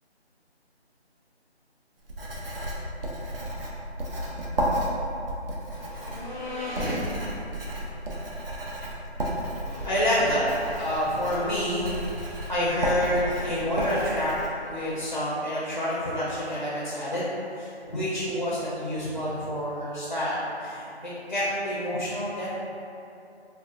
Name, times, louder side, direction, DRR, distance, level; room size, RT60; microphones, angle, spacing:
Writing, 2.0-14.5, right 1 dB, 60° right, 0.5 m, -32 dB
voice 1, 5.7-7.0 9.7-22.6, left 1 dB, 45° left, -8 dB, 0.4 m, -28 dB
3.6 x 2.2 x 2.2 m, 2.8 s
figure-of-eight pair, 175°, 33 cm